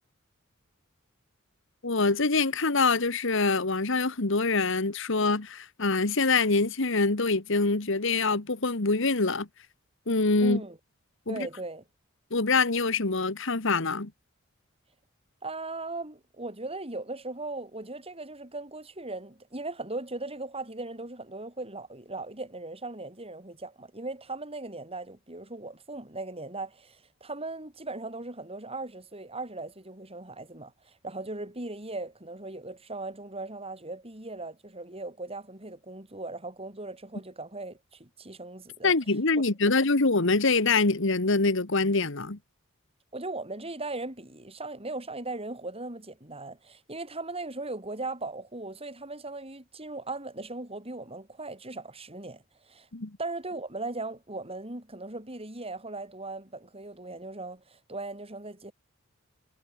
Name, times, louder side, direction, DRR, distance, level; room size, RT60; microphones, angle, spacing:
voice 1, 1.8-9.5 10.1-10.6 11.3-11.5 12.3-14.1 38.8-42.4 52.9-53.1, left 3 dB, 65° left, 1.7 m, -25 dB
voice 2, 10.4-10.8 11.3-11.8 15.4-38.9 39.4-39.5 43.1-52.9 53.2-58.7, right 2 dB, 30° right, 7.6 m, -38 dB
head